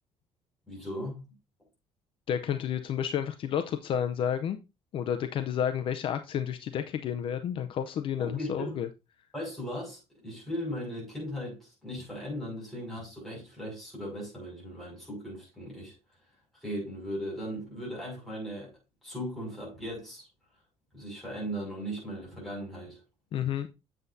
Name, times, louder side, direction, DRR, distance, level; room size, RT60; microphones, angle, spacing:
voice 1, 0.7-1.2 8.2-8.7 9.3-15.9 16.6-18.7 19.0-20.3 20.9-23.0, equal, ahead, 5.6 m, -38 dB
voice 2, 2.3-4.6 4.9-8.9 23.3-23.7, left 9 dB, 50° left, 0.5 m, -31 dB
8.1 x 7.7 x 2.6 m
cardioid pair, 165°, 12 cm